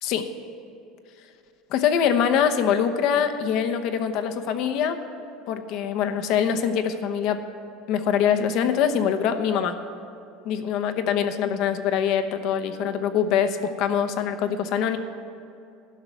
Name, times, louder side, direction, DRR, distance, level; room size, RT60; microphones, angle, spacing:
voice 1, 1.7-5.0 5.5-7.4 7.9-9.7 10.4-15.0, left 8 dB, 60° left, 8 dB, 0.9 m, -24 dB
12.0 x 6.0 x 9.1 m, 2.7 s
supercardioid pair, 95°, 0 cm